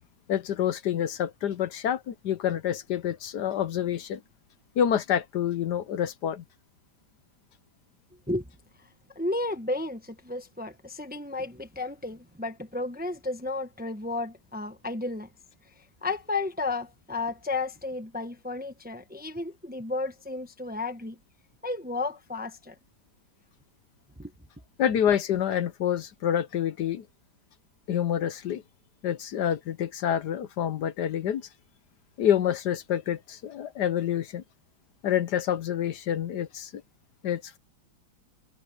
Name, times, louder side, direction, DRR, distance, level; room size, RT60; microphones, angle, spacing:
voice 1, 0.3-4.2 4.8-6.4 24.8-27.0 27.9-28.6 29.0-31.4 32.2-34.4 35.0-36.7 37.2-37.6, left 10 dB, 70° left, 1.3 m, -27 dB
voice 2, 9.1-15.3 16.0-21.2 21.6-22.8 24.2-24.3, left 2 dB, 5° right, 0.9 m, -33 dB
omnidirectional pair, 2.0 m